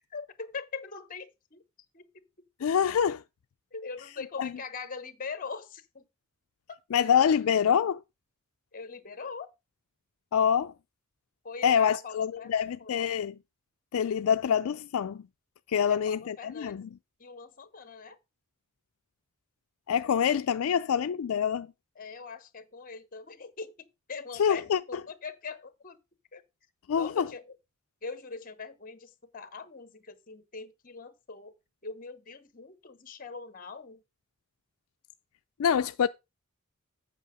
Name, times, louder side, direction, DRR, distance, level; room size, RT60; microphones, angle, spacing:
voice 1, 0.1-1.6 1.9-2.5 3.7-6.1 8.7-9.5 11.4-12.5 12.8-13.2 15.9-16.9 17.2-18.2 22.0-26.0 26.3-26.4 27.0-27.6 28.0-31.6 31.8-34.0, left 5 dB, 40° left, 1.1 m, -42 dB
voice 2, 2.6-3.2 4.4-4.5 6.9-8.0 10.3-10.7 11.6-13.4 13.9-15.3 15.7-16.9 19.9-21.7 24.4-25.0 26.9-27.3 35.6-36.1, left 8 dB, 80° left, 0.4 m, -26 dB
8.4 x 5.4 x 5.0 m
head